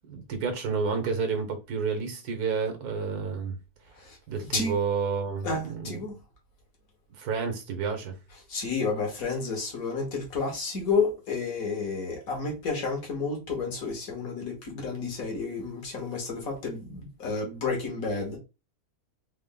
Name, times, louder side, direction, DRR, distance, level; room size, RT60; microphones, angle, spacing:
voice 1, 0.0-3.6 4.3-6.0 7.2-8.1, right 5 dB, 80° right, 1.5 m, -30 dB
voice 2, 5.4-6.1 8.5-18.4, left 4 dB, 65° left, 1.7 m, -31 dB
4.1 x 2.1 x 3.8 m
omnidirectional pair, 1.6 m